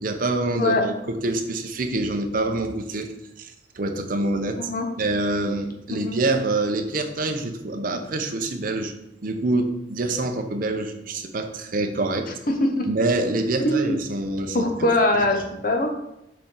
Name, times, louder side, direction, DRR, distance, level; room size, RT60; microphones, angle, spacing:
voice 1, 0.0-3.1 3.4-4.7 5.0-8.9 9.2-12.3 12.9-14.7 15.1-15.3, right 2 dB, 50° right, 5 dB, 0.7 m, -26 dB
voice 2, 12.5-12.9 13.6-14.0 14.5-15.9, left 1 dB, 50° left, 4 dB, 0.9 m, -22 dB
6.8 x 4.2 x 3.8 m, 0.85 s
head